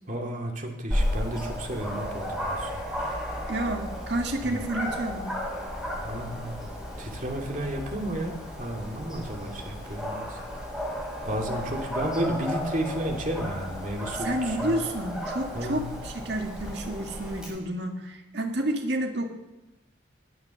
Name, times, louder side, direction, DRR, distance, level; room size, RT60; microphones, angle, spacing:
voice 1, 0.1-2.8 4.4-4.6 6.0-6.7 7.0-10.4 11.3-14.8 15.5-15.9, right 1 dB, 40° right, 1 dB, 2.6 m, -32 dB
Dog, 0.9-17.4, equal, 5° right, 6.7 m, -34 dB
voice 2, 3.5-5.3 14.1-19.3, right 1 dB, 60° right, 3 dB, 2.0 m, -30 dB
20.0 x 9.6 x 7.0 m, 1.0 s
head